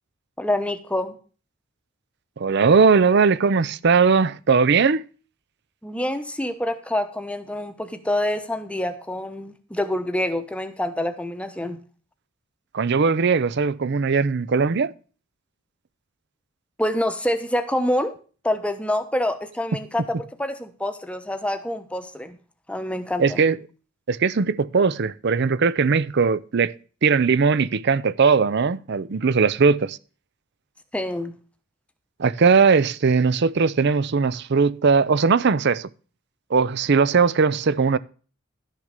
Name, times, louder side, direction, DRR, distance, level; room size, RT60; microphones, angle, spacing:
voice 1, 0.4-1.1 5.8-11.8 16.8-18.1 18.4-22.4 22.7-23.4 30.9-31.3, left 1 dB, 5° left, 0.9 m, -26 dB
voice 2, 2.4-5.0 12.7-14.9 23.2-23.6 24.1-26.7 27.0-30.0 32.2-35.9 36.5-38.0, right 5 dB, 50° right, 0.5 m, -19 dB
12.0 x 6.6 x 6.6 m
head